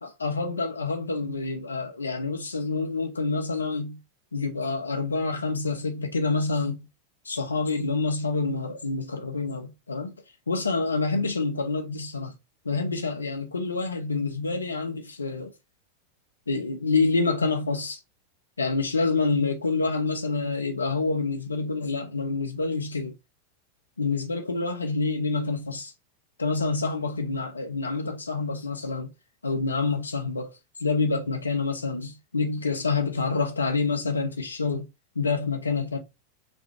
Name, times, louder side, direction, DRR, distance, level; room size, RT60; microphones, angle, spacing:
voice 1, 0.0-4.0 4.3-6.8 7.2-10.1 10.5-12.3 12.6-15.5 16.5-18.0 18.6-23.1 24.0-25.9 26.4-29.1 29.4-30.5 30.8-34.9 35.1-36.0, left 3 dB, 75° left, 0.8 m, -27 dB
4.3 x 2.3 x 3.2 m
figure-of-eight pair, 90°, 0 cm